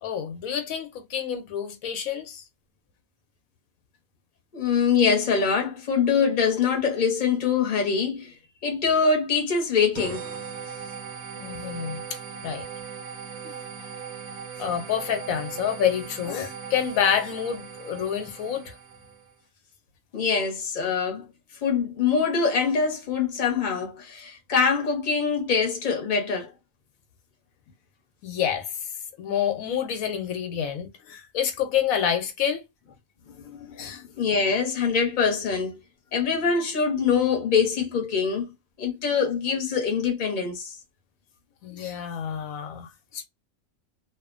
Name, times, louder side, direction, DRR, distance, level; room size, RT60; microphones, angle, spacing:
voice 1, 0.0-2.4 11.4-12.0 12.4-12.7 14.6-18.7 28.2-28.7 29.2-32.6 33.7-34.0 41.6-43.3, left 8 dB, 85° left, 1.1 m, -28 dB
voice 2, 4.5-8.3 8.6-10.3 20.1-21.2 21.6-26.5 33.4-35.8 36.1-38.5 38.8-40.7, left 5 dB, 40° left, 0.9 m, -24 dB
sound 1, 10.0-19.3, right 6 dB, 85° right, 1.0 m, -39 dB
2.8 x 2.1 x 2.4 m
omnidirectional pair, 1.4 m